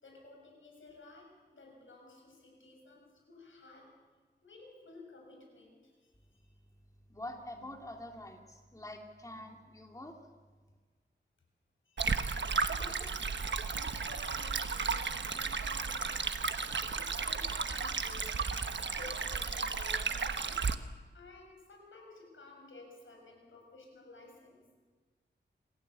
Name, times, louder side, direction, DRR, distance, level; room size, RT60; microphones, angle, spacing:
voice 1, 0.0-3.9 4.4-6.5 11.9-18.3 19.0-20.9 21.1-24.7, left 2 dB, 90° left, 1 dB, 7.0 m, -54 dB
voice 2, 7.1-10.2, left 1 dB, 15° left, 2 dB, 2.6 m, -46 dB
Stream, 12.0-20.7, right 5 dB, 70° right, 1.2 m, -34 dB
26.5 x 16.0 x 8.3 m, 1.4 s
wide cardioid pair, 85°, 20 cm